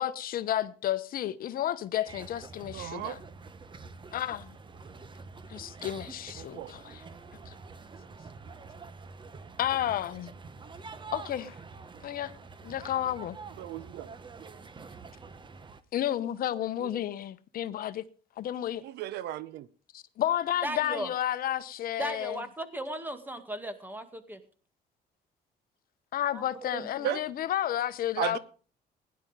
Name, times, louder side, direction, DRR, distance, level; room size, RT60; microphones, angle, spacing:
voice 1, 0.0-3.2 4.1-4.5 5.5-7.0 7.5-7.6 9.6-10.3 11.1-11.6 12.0-12.3 12.6-13.4 15.9-18.0 18.4-18.8 19.9-22.4 26.1-28.4, left 11 dB, 60° left, 0.9 m, -31 dB
sound 1, 2.1-15.8, right 4 dB, 30° right, 1.1 m, -47 dB
voice 2, 2.7-3.2 6.4-6.7 13.6-14.1 16.8-16.9 18.8-19.7 27.0-27.2 28.2-28.4, right 13 dB, 80° right, 0.9 m, -34 dB
voice 3, 20.6-21.1 22.0-24.4 26.3-27.1, right 1 dB, 10° right, 2.2 m, -37 dB
16.5 x 10.5 x 5.3 m
cardioid pair, 110°, 17 cm